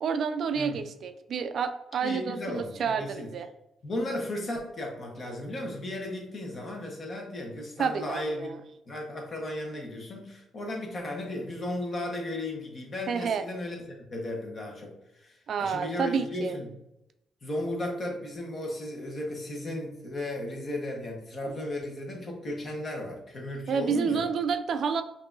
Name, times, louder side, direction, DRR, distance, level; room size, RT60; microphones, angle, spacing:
voice 1, 0.0-3.5 7.8-8.6 13.1-13.4 15.5-16.5 23.7-25.0, right 6 dB, 60° right, 9 dB, 0.3 m, -29 dB
voice 2, 2.0-3.3 3.8-8.5 8.9-16.7 17.4-24.3, left 1 dB, 40° left, 1 dB, 1.1 m, -35 dB
5.3 x 2.7 x 2.6 m, 0.87 s
cardioid pair, 90°, 0 cm